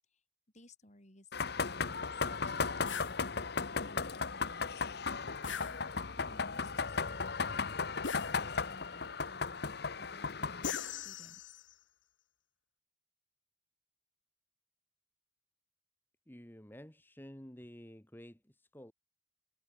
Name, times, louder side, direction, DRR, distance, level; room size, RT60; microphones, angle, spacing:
voice 1, 0.5-9.6 10.0-11.4, left 1 dB, 40° left, 5.6 m, -58 dB
sound 1, 1.3-10.7, left 4 dB, 55° left, 1.1 m, -36 dB
sound 2, 2.9-3.2 5.4-6.3 8.0-8.8 10.6-11.7, left 7 dB, 75° left, 1.4 m, -41 dB
voice 2, 16.3-18.9, equal, 10° left, 2.1 m, -51 dB
head